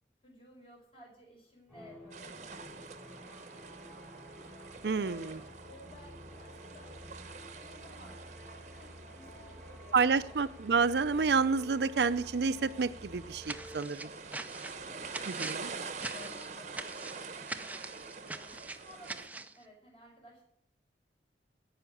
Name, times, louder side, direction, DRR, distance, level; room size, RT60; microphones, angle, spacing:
voice 1, 0.2-2.9 3.2-4.2 4.6-8.2 8.8-10.5 14.0-14.5 14.8-15.1 15.7-20.4, left 1 dB, 30° left, -1 dB, 5.2 m, -57 dB
sound 1, 1.7-13.8, equal, 10° left, 4.1 m, -51 dB
sound 2, 2.1-19.3, right 4 dB, 40° right, 0.9 m, -46 dB
voice 2, 4.8-5.4 9.9-14.1 15.3-15.7, right 5 dB, 70° right, 14 dB, 0.5 m, -29 dB
sound 3, 13.4-19.6, right 3 dB, 10° right, 0.5 m, -43 dB
17.0 x 5.7 x 7.2 m, 0.72 s
head